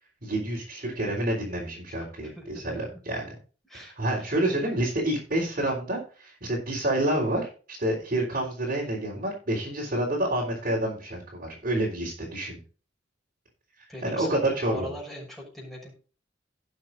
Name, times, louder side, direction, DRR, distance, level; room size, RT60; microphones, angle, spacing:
voice 1, 0.2-3.4 3.7-7.4 7.7-12.6 14.0-14.9, right 1 dB, 50° right, -5 dB, 3.8 m, -28 dB
voice 2, 3.6-4.7 13.9-15.9, equal, ahead, -3 dB, 6.3 m, -40 dB
18.0 x 7.3 x 2.6 m, 0.37 s
head